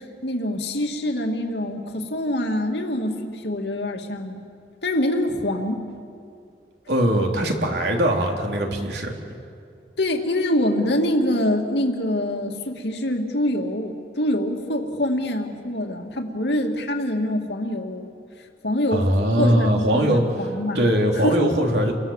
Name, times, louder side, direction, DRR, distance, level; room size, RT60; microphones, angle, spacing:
voice 1, 0.0-4.4 4.8-5.8 10.0-18.1 18.6-19.1 19.4-21.5, left 1 dB, 75° left, 3 dB, 2.4 m, -25 dB
voice 2, 6.9-9.1 18.9-20.2 20.8-21.9, equal, 75° right, 1 dB, 3.4 m, -21 dB
30.0 x 23.5 x 7.3 m, 2.3 s
head